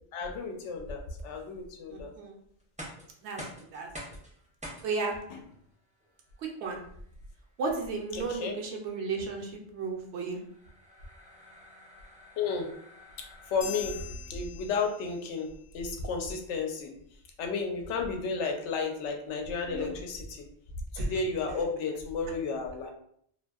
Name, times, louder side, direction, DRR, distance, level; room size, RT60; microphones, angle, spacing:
voice 1, 0.1-2.1 8.1-8.6 12.4-12.7 13.5-14.0 14.3-15.5 15.7-16.9 17.4-20.4 20.9-22.9, left 4 dB, 90° left, 3 dB, 0.9 m, -32 dB
voice 2, 1.9-2.4 3.2-3.9 4.8-5.2 6.4-6.8 7.6-10.4 19.7-19.9 21.0-21.1, right 4 dB, 80° right, 1 dB, 0.9 m, -34 dB
sound 1, 2.6-14.5, equal, 10° right, 0.4 m, -50 dB
sound 2, 13.6-15.5, left 7 dB, 55° left, 0.8 m, -43 dB
2.6 x 2.5 x 2.3 m, 0.67 s
omnidirectional pair, 1.2 m